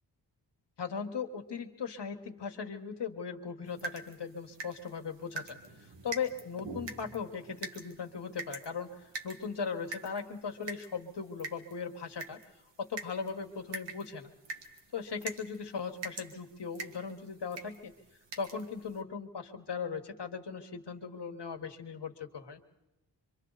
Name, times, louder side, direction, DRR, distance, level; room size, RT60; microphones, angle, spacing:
voice 1, 0.8-12.4 12.8-14.3 14.9-17.9 18.4-22.6, left 6 dB, 65° left, 4 dB, 1.6 m, -38 dB
sound 1, 3.6-19.0, right 3 dB, 75° right, 1.8 m, -46 dB
26.0 x 25.0 x 4.1 m, 0.93 s
wide cardioid pair, 130°, 44 cm